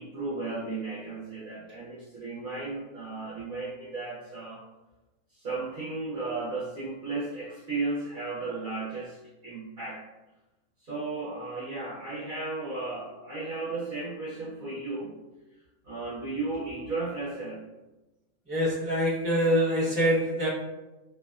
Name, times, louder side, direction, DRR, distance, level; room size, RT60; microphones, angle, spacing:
voice 1, 0.0-4.6 5.3-10.0 10.8-15.2 15.8-17.6, right 3 dB, 55° right, -9 dB, 0.6 m, -35 dB
voice 2, 18.5-20.5, equal, 20° right, -9 dB, 0.9 m, -25 dB
2.6 x 2.1 x 2.4 m, 1.1 s
omnidirectional pair, 1.6 m